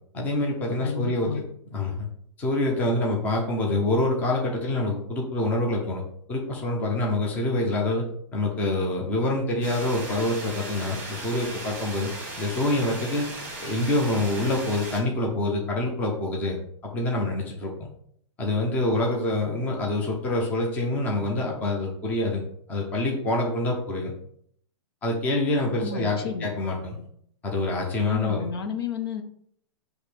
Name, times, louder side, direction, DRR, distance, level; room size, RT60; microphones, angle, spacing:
voice 1, 0.1-1.4 1.7-2.1 2.4-6.0 6.3-8.0 8.3-12.1 12.4-13.3 13.6-17.7 18.4-22.4 22.7-24.1 25.0-27.1 27.4-28.5, left 2 dB, 10° left, -1 dB, 0.8 m, -26 dB
voice 2, 0.8-1.4 25.8-26.5 28.1-29.2, left 6 dB, 50° left, 6 dB, 0.8 m, -31 dB
sound 1, 9.6-15.0, right 2 dB, 10° right, 1.3 m, -37 dB
6.4 x 3.1 x 4.9 m, 0.65 s
hypercardioid pair, 175°, 16 cm